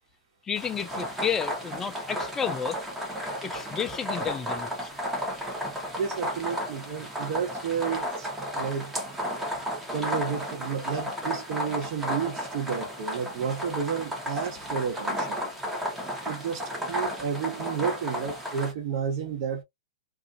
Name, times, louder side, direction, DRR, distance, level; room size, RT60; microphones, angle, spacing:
voice 1, 0.4-2.8 3.4-4.9 15.8-16.0, left 7 dB, 15° left, 0.3 m, -32 dB
sound 1, 0.6-18.7, equal, 10° right, 0.9 m, -33 dB
voice 2, 6.0-8.3 8.5-8.9 9.9-15.4 16.2-19.6, right 6 dB, 50° right, 1.3 m, -31 dB
2.5 x 2.4 x 2.5 m
hypercardioid pair, 135°, 3 cm